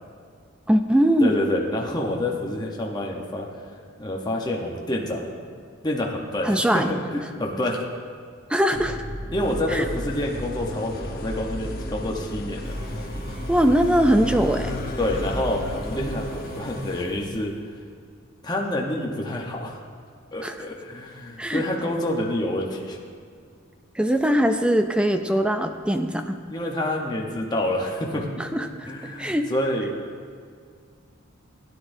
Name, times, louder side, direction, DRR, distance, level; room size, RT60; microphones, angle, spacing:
voice 1, 0.7-1.3 6.4-6.9 8.5-9.0 9.7-9.9 13.5-14.7 20.4-20.6 21.4-21.6 23.9-26.4 28.4-28.9 29.2-29.5, equal, 5° right, 7 dB, 0.3 m, -21 dB
voice 2, 1.2-3.5 4.0-5.4 5.8-7.0 7.4-7.8 9.3-12.8 15.0-17.5 18.4-19.8 20.3-23.0 26.5-28.3 28.8-29.9, left 1 dB, 20° left, -1 dB, 0.8 m, -27 dB
sound 1, 8.7-16.1, equal, 25° right, 0.9 m, -33 dB
sound 2, 9.4-17.1, left 2 dB, 45° left, 0.9 m, -39 dB
sound 3, 12.6-17.6, right 1 dB, 45° right, 1.9 m, -41 dB
16.5 x 9.9 x 2.6 m, 2.1 s
head